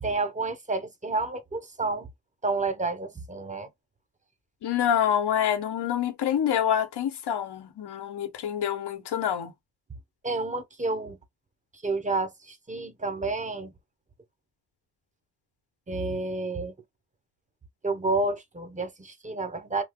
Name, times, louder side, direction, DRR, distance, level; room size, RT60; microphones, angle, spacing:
voice 1, 0.0-2.1 2.4-3.7 10.2-11.2 11.8-13.7 15.9-16.7 17.8-19.8, right 3 dB, 20° right, 0.7 m, -30 dB
voice 2, 4.6-9.5, left 9 dB, 85° left, 1.0 m, -26 dB
2.8 x 2.0 x 3.5 m
wide cardioid pair, 110°, 39 cm